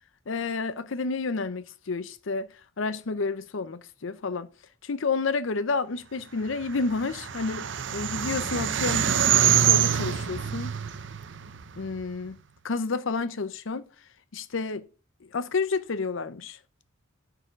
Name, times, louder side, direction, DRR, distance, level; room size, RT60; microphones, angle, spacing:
voice 1, 0.3-4.5 4.8-9.1 9.6-10.7 11.8-12.4 12.6-13.8 14.3-14.9 15.2-16.6, left 4 dB, 70° left, 0.6 m, -30 dB
sound 1, 6.6-12.0, right 9 dB, 60° right, 0.7 m, -25 dB
10.0 x 4.7 x 6.3 m
head